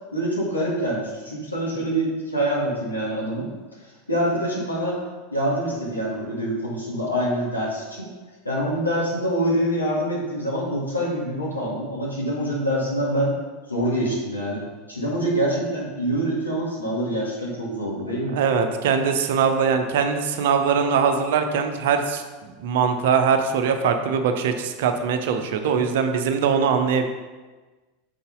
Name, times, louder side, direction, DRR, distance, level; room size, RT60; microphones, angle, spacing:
voice 1, 0.1-3.5 4.1-5.0 5.3-8.1 8.4-13.3 13.7-14.6 14.9-18.4, right 1 dB, 85° left, -6 dB, 2.0 m, -25 dB
voice 2, 18.3-22.2 22.6-27.1, right 6 dB, 60° right, 6 dB, 0.7 m, -21 dB
6.7 x 5.5 x 3.8 m, 1.3 s
figure-of-eight pair, 85°, 0 cm